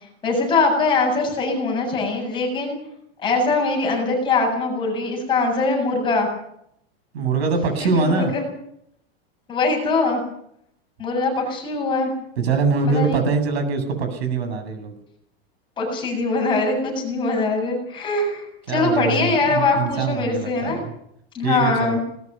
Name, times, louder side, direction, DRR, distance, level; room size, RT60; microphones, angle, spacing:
voice 1, 0.2-2.8 3.2-6.3 7.8-8.4 9.5-10.2 11.0-12.1 12.9-13.2 15.8-20.8 21.3-22.0, left 3 dB, 15° left, 1 dB, 7.7 m, -22 dB
voice 2, 7.1-8.3 12.4-14.9 18.7-20.9 21.4-22.0, right 4 dB, 80° right, 7 dB, 7.7 m, -23 dB
21.0 x 20.0 x 7.1 m, 0.71 s
supercardioid pair, 170°, 31 cm